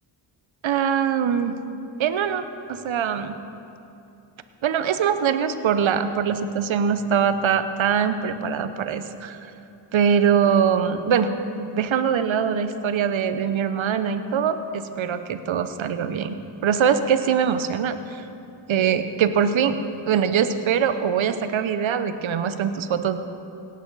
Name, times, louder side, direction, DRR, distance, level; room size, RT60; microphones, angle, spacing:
voice 1, 0.6-1.5 2.0-3.3 4.6-9.4 9.9-11.3 11.6-16.4 16.6-18.2 18.7-19.8 20.1-23.2, right 7 dB, 70° right, 10 dB, 0.8 m, -22 dB
17.5 x 8.6 x 4.0 m, 2.7 s
cardioid pair, 45°, 49 cm